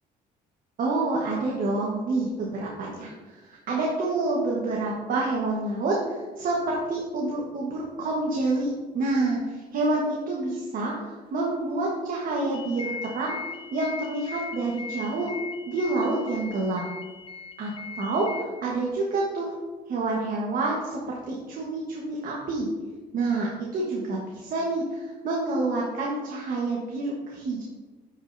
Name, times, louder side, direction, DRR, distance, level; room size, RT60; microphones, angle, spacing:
voice 1, 0.8-3.1 3.7-8.7 8.9-13.4 13.7-15.3 15.7-16.8 17.6-17.7 18.0-19.5 19.9-22.7 23.1-27.6, right 2 dB, 55° right, -3 dB, 1.3 m, -28 dB
sound 1, 12.5-18.4, left 5 dB, 30° left, 0.6 m, -39 dB
9.5 x 5.4 x 2.6 m, 1.3 s
cardioid pair, 110°, 17 cm